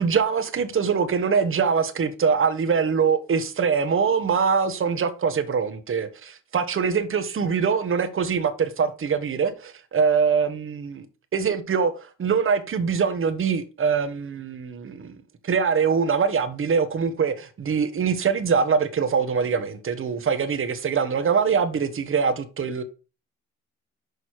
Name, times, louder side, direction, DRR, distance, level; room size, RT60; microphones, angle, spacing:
voice 1, 0.0-11.0 11.3-15.1 15.4-22.8, right 6 dB, 45° right, 1.2 m, -23 dB
6.6 x 5.4 x 4.7 m
cardioid pair, 90°, 30 cm